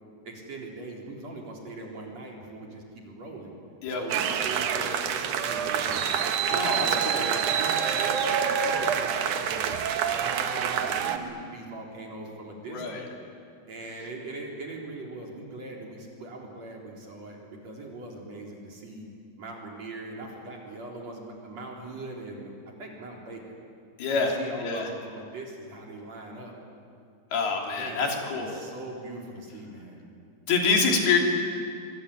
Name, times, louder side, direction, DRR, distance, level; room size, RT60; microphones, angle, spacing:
voice 1, 0.2-3.5 3.9-6.1 6.5-9.8 10.1-13.0 13.7-19.1 19.4-23.6 24.2-26.5 27.8-30.0, right 2 dB, 45° right, -1 dB, 4.9 m, -41 dB
sound 1, 4.1-11.2, right 8 dB, 65° right, 2.4 m, -27 dB
voice 2, 6.5-7.2 12.7-13.0 24.0-24.4 24.6-24.9 27.3-28.5 30.5-31.2, left 5 dB, 75° left, 1 dB, 5.0 m, -26 dB
25.0 x 23.0 x 9.9 m, 2.4 s
omnidirectional pair, 4.5 m